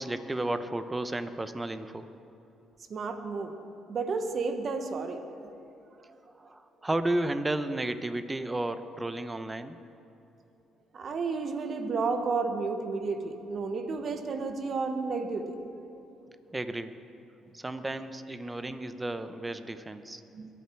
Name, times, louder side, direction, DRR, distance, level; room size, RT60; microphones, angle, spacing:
voice 1, 0.0-2.1 6.4-9.8 16.5-16.9 17.5-20.2, right 1 dB, 20° right, 10 dB, 0.9 m, -33 dB
voice 2, 2.9-3.5 3.9-5.5 6.1-6.2 10.9-15.6 20.3-20.5, right 4 dB, 55° right, 7 dB, 1.3 m, -32 dB
22.0 x 8.4 x 4.7 m, 2.9 s
supercardioid pair, 75°, 0 cm